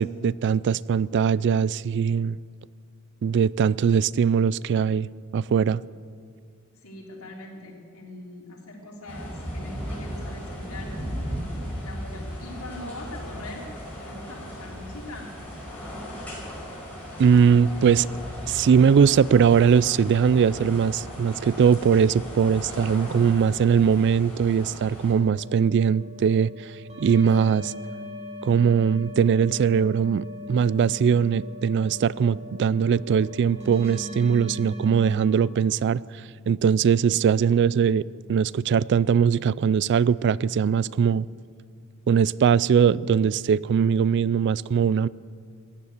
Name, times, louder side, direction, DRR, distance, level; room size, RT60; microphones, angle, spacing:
voice 1, 0.0-2.4 3.2-5.8 17.2-18.1 18.5-27.7 28.4-36.0 36.5-41.3 42.1-45.1, right 7 dB, 55° right, 0.3 m, -21 dB
voice 2, 6.8-10.9 11.7-13.7 14.0-15.3, left 1 dB, 80° left, 3.4 m, -41 dB
sound 1, 9.1-25.1, equal, 5° left, 5.9 m, -37 dB
sound 2, 24.9-35.2, left 2 dB, 30° right, 4.6 m, -40 dB
15.5 x 9.7 x 9.4 m
head